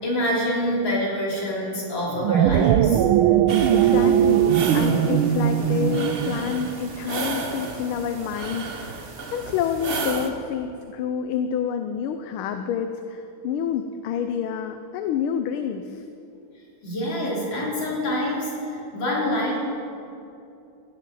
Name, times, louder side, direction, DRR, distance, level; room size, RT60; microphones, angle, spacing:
voice 1, 0.0-3.0 16.8-19.6, equal, 60° left, -4 dB, 3.9 m, -26 dB
sound 1, 2.1-6.7, right 10 dB, 80° right, 1.4 m, -20 dB
sound 2, 3.5-10.3, right 4 dB, 45° right, 0.8 m, -33 dB
voice 2, 3.7-16.0, left 7 dB, 80° left, 7 dB, 1.5 m, -28 dB
16.5 x 6.8 x 8.6 m, 2.7 s
omnidirectional pair, 2.3 m